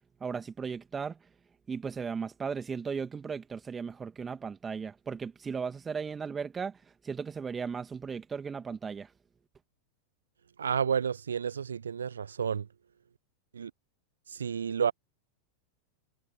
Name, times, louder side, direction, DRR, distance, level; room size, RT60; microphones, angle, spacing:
voice 1, 0.2-1.2 1.7-6.8 7.0-9.1, right 6 dB, 15° right, 2.5 m, -36 dB
voice 2, 10.6-12.7 13.5-13.7 14.3-14.9, right 7 dB, 70° right, 0.8 m, -30 dB
figure-of-eight pair, 90°, 0 cm